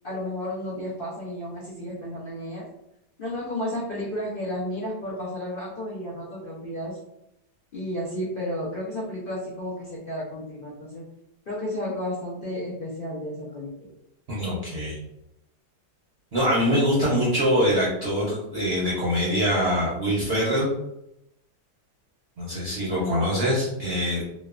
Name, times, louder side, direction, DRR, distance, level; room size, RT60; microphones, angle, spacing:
voice 1, 0.0-2.7 3.2-7.0 7.7-11.0 11.5-13.9 22.9-23.3, left 1 dB, 85° left, -6 dB, 0.4 m, -32 dB
voice 2, 14.3-15.0 16.3-20.7 22.4-24.2, equal, 55° right, -6 dB, 0.7 m, -24 dB
3.0 x 2.1 x 2.3 m, 0.82 s
omnidirectional pair, 1.8 m